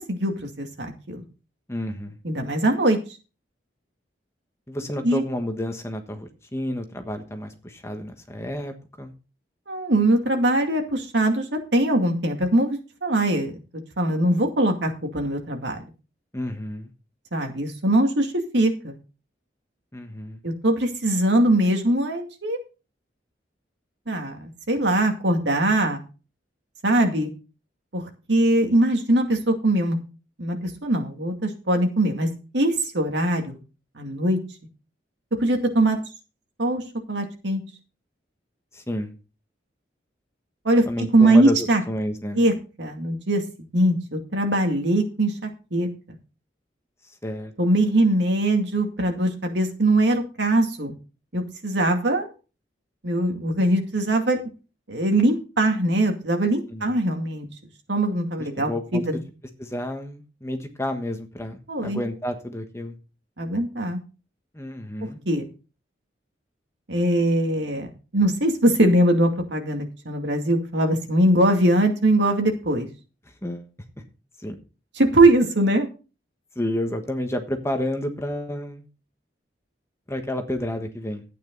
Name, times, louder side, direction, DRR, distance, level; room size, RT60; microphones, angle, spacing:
voice 1, 0.1-1.2 2.2-3.0 5.0-5.2 9.7-11.5 11.7-13.5 14.0-15.8 17.3-18.9 20.4-22.6 24.1-26.0 26.8-27.3 27.9-30.0 30.4-32.3 32.5-33.6 34.0-34.4 35.4-36.0 36.6-36.8 37.1-37.6 40.6-40.9 41.1-41.8 42.4-42.5 42.8-46.2 47.6-50.9 51.3-52.3 53.0-54.4 54.9-57.5 57.9-59.2 61.7-62.0 63.4-64.0 65.3-65.4 66.9-72.9 75.0-75.9, right 1 dB, 70° right, 4 dB, 2.3 m, -21 dB
voice 2, 1.7-2.2 4.7-9.1 16.3-16.9 19.9-20.4 38.7-39.1 40.9-42.4 47.2-47.5 56.7-57.0 58.4-59.0 59.6-62.9 64.5-65.2 73.4-73.7 74.4-74.6 76.5-78.9 80.1-81.2, left 1 dB, 15° left, 6 dB, 1.3 m, -30 dB
11.5 x 9.3 x 4.0 m, 0.33 s
head